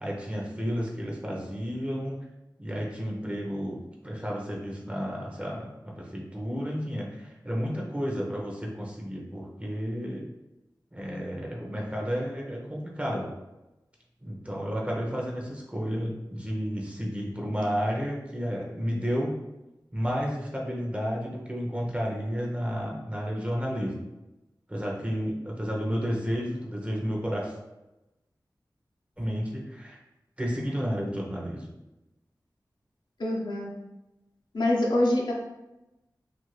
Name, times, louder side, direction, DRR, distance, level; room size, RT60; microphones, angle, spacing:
voice 1, 0.0-2.2 2.6-10.3 10.9-13.3 14.2-19.4 19.9-24.0 24.7-27.5 29.2-30.0 30.4-31.7, equal, 15° right, -2 dB, 0.7 m, -32 dB
voice 2, 33.2-33.7 34.5-35.3, left 1 dB, 70° left, -2 dB, 0.6 m, -25 dB
2.5 x 2.4 x 3.1 m, 0.98 s
wide cardioid pair, 65°, 8 cm